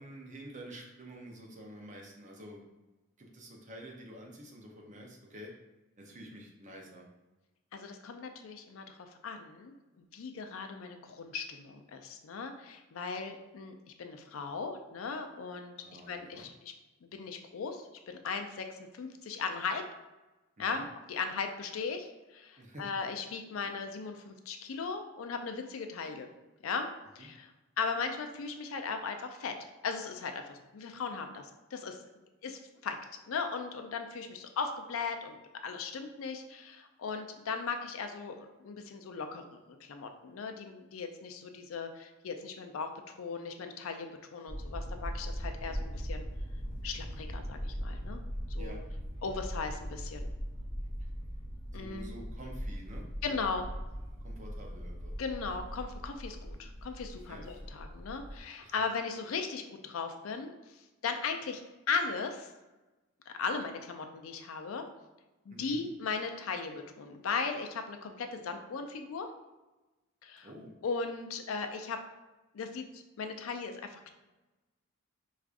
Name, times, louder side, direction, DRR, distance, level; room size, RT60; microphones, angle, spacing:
voice 1, 0.0-2.7 3.2-5.6 6.0-7.1 15.8-16.5 20.6-20.8 22.6-22.9 23.6-23.8 27.2-27.3 48.6-48.8 51.7-53.4 54.2-55.1 57.3-57.5 58.6-58.7 65.5-65.8 70.4-70.8, equal, 35° right, 0 dB, 0.6 m, -49 dB
voice 2, 7.7-16.7 17.0-19.8 20.6-26.3 26.6-26.9 27.2-27.5 27.8-29.5 29.8-32.0 32.4-33.0 33.3-35.4 35.6-46.3 46.8-48.2 48.5-48.8 49.2-50.2 51.7-52.1 53.2-53.7 55.2-60.5 61.0-61.6 61.9-62.5 63.3-64.8 65.5-69.3 70.2-70.5 70.8-72.0 72.5-74.1, left 5 dB, 75° left, 6 dB, 0.4 m, -37 dB
sound 1, 44.5-58.4, equal, 30° left, 0.6 m, -40 dB
4.7 x 2.4 x 2.5 m, 1.1 s
head